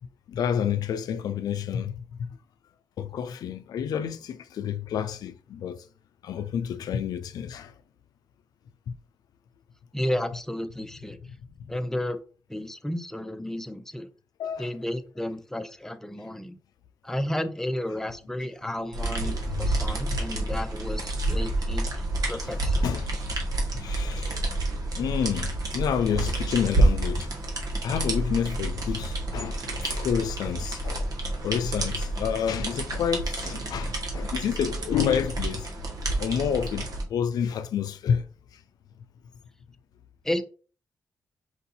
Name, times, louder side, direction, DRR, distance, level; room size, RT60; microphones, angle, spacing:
voice 1, 0.3-2.3 3.0-5.8 6.2-7.7 8.9-9.0 14.4-14.7 19.2-19.8 22.8-23.1 23.7-24.4 25.0-27.3 27.8-31.1 31.4-35.7 36.2-38.2, left 8 dB, 85° left, 0.4 m, -29 dB
voice 2, 9.9-11.2 11.7-12.2 12.5-14.1 14.6-16.6 17.0-22.0 22.3-22.9 40.2-40.4, left 1 dB, 5° left, 0.7 m, -32 dB
sound 1, 18.9-37.0, right 2 dB, 70° right, 1.4 m, -29 dB
4.7 x 2.7 x 4.1 m
cardioid pair, 55°, 7 cm